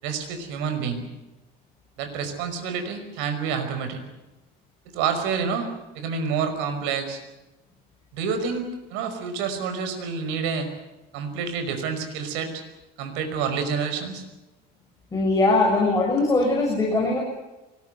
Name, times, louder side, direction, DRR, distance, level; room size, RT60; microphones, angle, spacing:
voice 1, 0.0-1.0 2.0-4.0 4.9-5.7 5.9-7.2 8.1-10.7 11.1-12.6 13.0-14.2, right 6 dB, 90° right, 7 dB, 5.5 m, -28 dB
voice 2, 15.1-17.2, left 2 dB, 20° left, -2 dB, 7.0 m, -21 dB
24.0 x 21.0 x 8.1 m, 1.0 s
cardioid pair, 130°, 18 cm